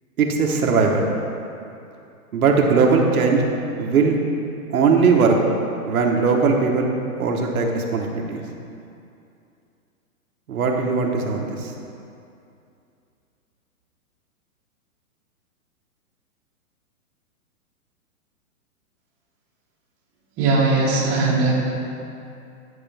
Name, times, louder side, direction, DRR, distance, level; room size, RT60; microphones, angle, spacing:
voice 1, 0.2-1.1 2.3-3.5 3.8-4.2 4.7-5.4 5.9-6.9 7.2-8.4 10.5-11.7, right 4 dB, 70° right, 1 dB, 1.2 m, -19 dB
voice 2, 20.4-21.5, right 3 dB, 20° right, -6 dB, 1.3 m, -19 dB
11.0 x 6.6 x 3.4 m, 2.6 s
hypercardioid pair, 160°, 44 cm